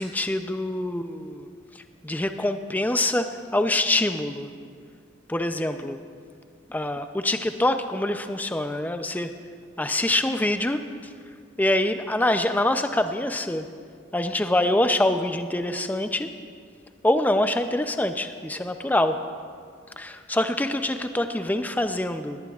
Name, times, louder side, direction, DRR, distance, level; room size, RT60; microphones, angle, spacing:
voice 1, 0.0-1.5 1.7-4.5 5.3-6.0 6.7-9.3 9.8-10.8 11.6-13.7 14.1-16.3 17.0-19.2 20.0-22.4, left 1 dB, 10° left, 8 dB, 0.4 m, -25 dB
19.0 x 17.5 x 2.4 m, 2.2 s
head